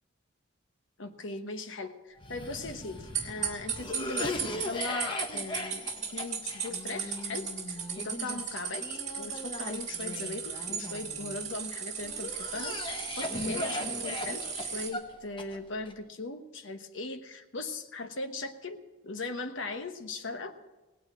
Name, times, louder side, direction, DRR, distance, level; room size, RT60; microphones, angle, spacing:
voice 1, 1.0-8.9 9.2-12.8 13.2-20.5, left 3 dB, 70° left, 7 dB, 1.1 m, -39 dB
Cough, 2.2-11.4 12.0-15.9, left 1 dB, 25° left, 1.0 m, -39 dB
sound 1, 3.1-14.9, right 7 dB, 35° right, 2.0 m, -36 dB
17.5 x 9.2 x 6.2 m, 1.1 s
head